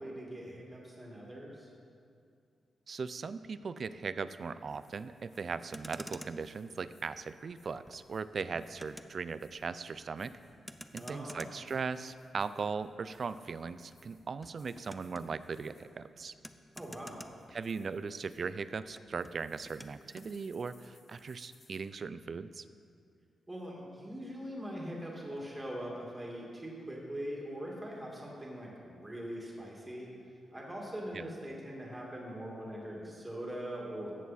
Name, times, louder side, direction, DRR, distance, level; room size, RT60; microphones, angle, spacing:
voice 1, 0.0-1.7 10.9-11.5 16.8-17.2 23.5-30.1 30.5-34.1, equal, 15° right, -3 dB, 2.1 m, -42 dB
voice 2, 2.9-10.3 10.9-16.3 17.5-22.6 31.1-31.2, right 5 dB, 50° right, 14 dB, 0.3 m, -39 dB
sound 1, 4.4-16.1 16.5-18.8 19.1-21.8, left 3 dB, 60° left, 2.8 m, -68 dB
Motor vehicle (road), 5.6-18.2 18.4-20.3, equal, 5° left, 0.5 m, -52 dB
14.5 x 7.1 x 4.1 m, 2.4 s
cardioid pair, 85°, 0 cm